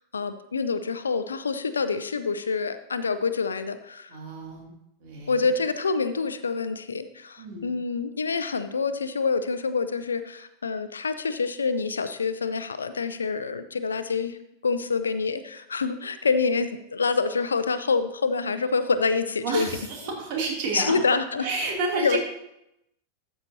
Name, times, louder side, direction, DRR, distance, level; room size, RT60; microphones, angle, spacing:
voice 1, 0.0-4.2 5.3-14.4 14.6-19.7 20.7-21.5 21.9-22.2, left 4 dB, 75° left, 11 dB, 0.6 m, -26 dB
voice 2, 4.1-4.7 5.0-5.5 7.4-7.7 19.4-21.0 21.4-22.2, right 3 dB, 45° right, -1 dB, 2.7 m, -30 dB
13.0 x 8.1 x 2.8 m, 0.82 s
figure-of-eight pair, 90°, 0 cm